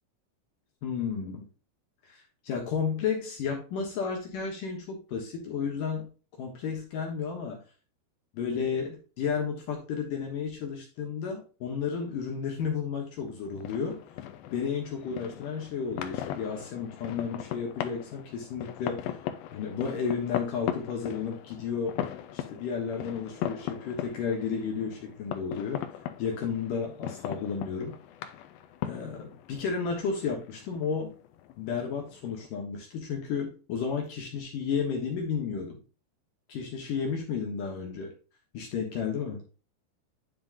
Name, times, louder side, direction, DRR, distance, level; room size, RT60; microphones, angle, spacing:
voice 1, 0.8-1.5 2.1-2.2 2.4-6.1 6.4-7.6 8.3-14.0 14.5-19.1 19.5-22.0 22.3-25.9 26.2-28.0 28.8-31.1 31.6-35.8 36.5-38.1 38.5-39.4, left 6 dB, 65° left, 1 dB, 2.5 m, -32 dB
sound 1, 13.2-32.5, left 11 dB, 80° left, 2.2 m, -39 dB
9.5 x 5.6 x 2.6 m, 0.34 s
omnidirectional pair, 4.8 m